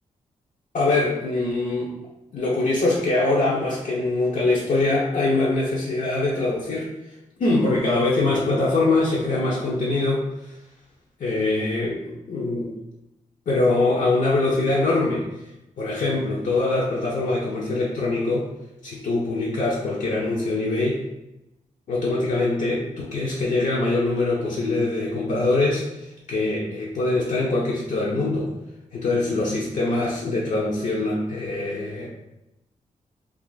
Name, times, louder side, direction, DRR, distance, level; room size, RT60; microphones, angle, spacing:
voice 1, 0.7-1.9 2.3-6.9 7.4-10.2 11.2-12.7 13.5-15.3 15.8-18.5 18.8-21.0 21.9-28.5 28.9-32.1, left 2 dB, 60° left, -5 dB, 0.5 m, -23 dB
2.5 x 2.4 x 3.8 m, 0.93 s
wide cardioid pair, 160°, 14 cm